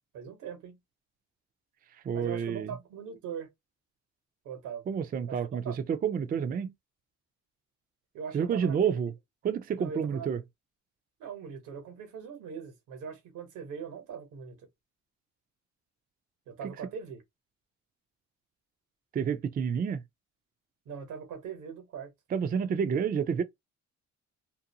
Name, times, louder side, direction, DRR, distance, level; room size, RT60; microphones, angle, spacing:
voice 1, 0.1-0.8 2.1-3.5 4.4-4.9 5.3-5.7 8.1-9.0 9.8-10.3 11.2-14.6 16.5-17.2 20.8-22.1, right 7 dB, 85° right, 1.1 m, -41 dB
voice 2, 2.0-2.7 4.9-6.7 8.3-9.1 9.4-10.4 16.6-16.7 19.1-20.0 22.3-23.4, right 7 dB, 30° right, 0.4 m, -29 dB
2.6 x 2.1 x 2.7 m
cardioid pair, 90°, 30 cm